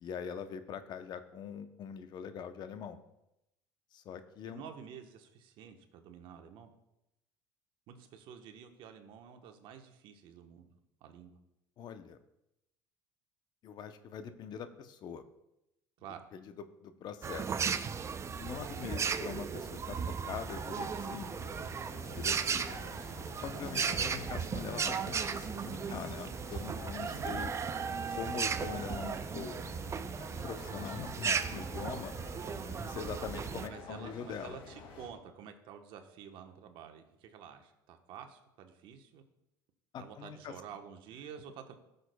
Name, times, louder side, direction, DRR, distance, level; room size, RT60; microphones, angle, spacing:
voice 1, 0.0-3.0 3.9-4.6 11.8-12.2 13.6-15.2 16.3-17.5 18.3-21.3 22.1-22.6 23.4-27.5 28.2-29.6 30.4-32.1 32.7-34.6 39.9-40.5, left 7 dB, 50° left, 10 dB, 0.8 m, -43 dB
voice 2, 4.4-6.7 7.9-10.7 11.0-11.4 16.0-16.3 22.8-22.9 23.4-23.6 27.1-27.4 33.6-39.2 40.0-41.7, right 8 dB, 65° right, 6 dB, 1.1 m, -50 dB
sound 1, 17.2-33.7, right 6 dB, 30° right, 0.5 m, -36 dB
sound 2, 20.4-35.1, left 4 dB, 65° left, 2.4 m, -50 dB
14.5 x 6.7 x 2.3 m, 0.86 s
supercardioid pair, 85°, 9 cm